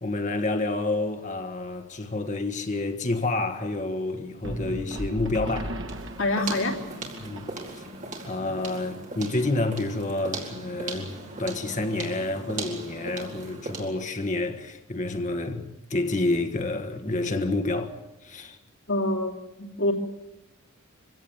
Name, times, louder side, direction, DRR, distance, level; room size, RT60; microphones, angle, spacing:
voice 1, 0.0-5.8 7.2-7.5 7.7-7.8 8.2-18.0 18.2-18.6, left 2 dB, 35° left, 1.6 m, -29 dB
sound 1, 4.4-8.0, right 1 dB, 60° right, 1.6 m, -36 dB
sound 2, 5.8-14.1, right 3 dB, 40° right, 4.4 m, -38 dB
voice 2, 6.2-6.8 18.9-19.9, left 1 dB, 70° left, 3.0 m, -26 dB
25.5 x 17.0 x 9.1 m
head